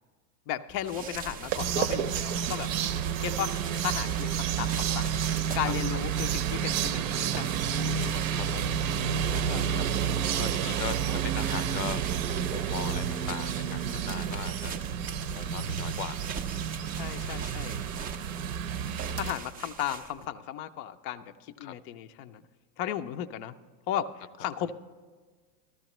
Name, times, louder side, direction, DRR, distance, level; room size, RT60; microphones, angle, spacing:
voice 1, 0.5-2.7 3.2-5.1 5.5-7.6 9.5-9.6 16.9-17.8 19.1-22.4 22.8-23.5 23.9-24.7, left 11 dB, 40° left, 8 dB, 0.4 m, -35 dB
sound 1, 0.7-20.3, right 6 dB, 20° right, 0.4 m, -42 dB
sound 2, 1.2-19.3, right 8 dB, 60° right, 0.7 m, -30 dB
voice 2, 5.6-6.0 8.3-8.7 9.6-9.8 10.3-12.0 12.5-14.7 15.3-16.2 17.3-17.4 21.6-21.7, left 9 dB, 85° left, 14 dB, 0.7 m, -39 dB
14.0 x 13.5 x 3.0 m, 1.4 s
hypercardioid pair, 125°, 48 cm